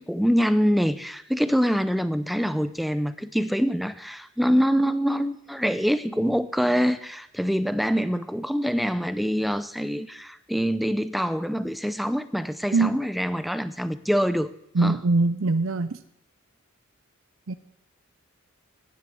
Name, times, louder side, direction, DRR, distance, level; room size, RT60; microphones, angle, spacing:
voice 1, 0.0-14.5 14.8-15.0, equal, ahead, 12 dB, 0.5 m, -25 dB
voice 2, 14.7-16.0 17.5-17.6, right 3 dB, 70° right, 11 dB, 0.6 m, -22 dB
10.5 x 10.0 x 7.7 m, 0.78 s
head